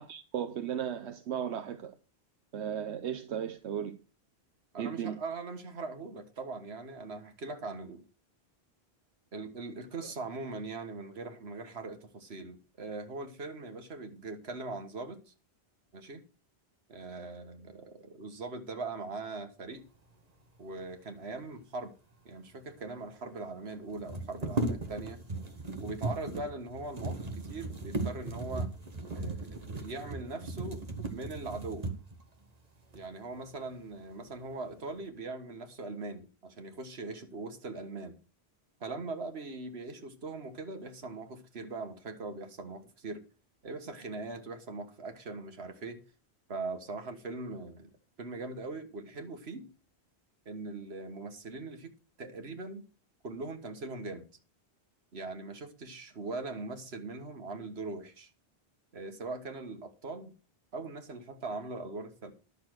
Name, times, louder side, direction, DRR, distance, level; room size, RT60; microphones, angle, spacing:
voice 1, 0.0-1.9 2.5-3.9 4.8-5.2, right 9 dB, 90° right, 1.1 m, -35 dB
voice 2, 4.7-8.0 9.3-15.3 15.9-16.2 16.9-19.8 20.6-21.9 22.3-25.2 25.8-28.7 29.1-30.8 31.1-31.9 32.9-38.2 38.8-43.2 43.6-46.0 46.5-47.9 48.2-49.7 50.5-51.9 52.2-52.9 53.2-54.3 55.1-58.3 58.9-60.3 60.7-62.3, right 3 dB, 70° right, 1.8 m, -41 dB
sound 1, 22.4-22.5 22.7-22.8 23.9-32.2 32.9-33.0 33.5-34.1 34.5-35.0, right 2 dB, 40° right, 1.5 m, -37 dB
11.0 x 6.8 x 6.3 m
omnidirectional pair, 1.1 m